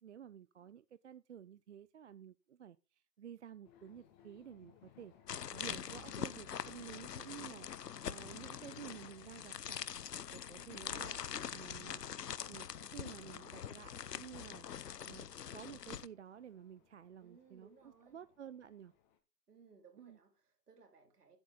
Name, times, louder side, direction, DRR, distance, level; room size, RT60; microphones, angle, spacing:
voice 1, 0.0-5.1 5.5-7.7 8.0-9.9 10.3-11.2 11.5-12.0 12.5-14.7 15.0-18.9 20.0-20.2, right 9 dB, 45° right, 0.5 m, -52 dB
sound 1, 3.6-19.2, left 10 dB, 25° left, 1.5 m, -64 dB
sound 2, 5.3-16.1, left 9 dB, 75° left, 0.8 m, -44 dB
voice 2, 17.2-18.2 19.5-21.4, right 5 dB, 65° right, 3.9 m, -63 dB
11.0 x 8.4 x 3.7 m
figure-of-eight pair, 130°, 49 cm